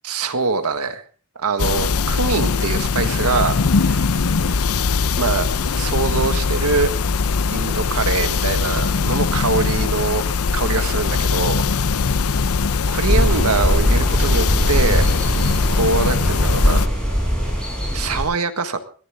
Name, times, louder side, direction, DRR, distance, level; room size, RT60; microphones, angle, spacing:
voice 1, 0.0-1.0 1.4-4.1 5.2-5.5 5.7-6.9 7.5-10.2 10.5-11.6 12.9-15.1 15.7-16.8 17.9-18.8, right 4 dB, 85° right, 9 dB, 1.6 m, -23 dB
sound 1, 1.6-16.9, left 4 dB, 75° left, 0.7 m, -21 dB
sound 2, 13.1-18.2, equal, 5° left, 7.6 m, -20 dB
21.5 x 15.0 x 3.6 m, 0.40 s
head